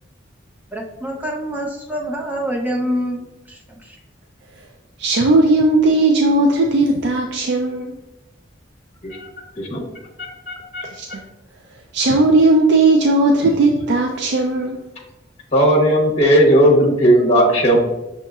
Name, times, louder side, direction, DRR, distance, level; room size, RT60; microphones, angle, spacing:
voice 1, 0.7-3.2 3.5-4.0, equal, 10° right, -1 dB, 0.6 m, -26 dB
voice 2, 5.0-7.9 10.9-11.1 11.9-14.8, right 2 dB, 60° right, 2 dB, 0.4 m, -16 dB
voice 3, 10.2-10.9 15.5-17.8, equal, 35° left, -2 dB, 0.9 m, -15 dB
6.2 x 2.9 x 2.3 m, 1.0 s
head